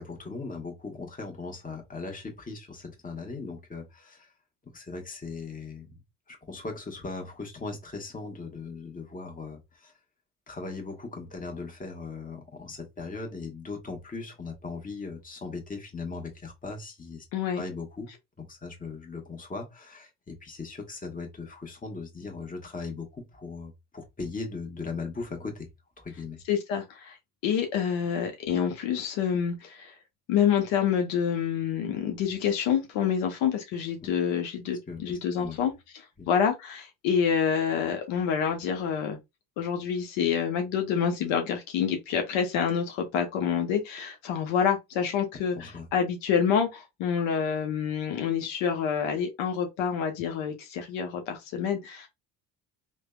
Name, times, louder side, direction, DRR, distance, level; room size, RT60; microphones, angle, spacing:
voice 1, 0.0-4.3 4.7-5.9 6.3-9.9 10.5-17.2 17.5-18.1 18.4-25.7 26.0-26.4 34.9-35.6 36.2-36.3 45.6-45.9, left 4 dB, 15° left, 1.1 m, -39 dB
voice 2, 17.3-17.6 26.5-27.2 27.4-29.9 30.3-39.2 39.6-52.1, left 7 dB, 65° left, 0.7 m, -27 dB
3.2 x 2.1 x 2.2 m
hypercardioid pair, 60°, 50 cm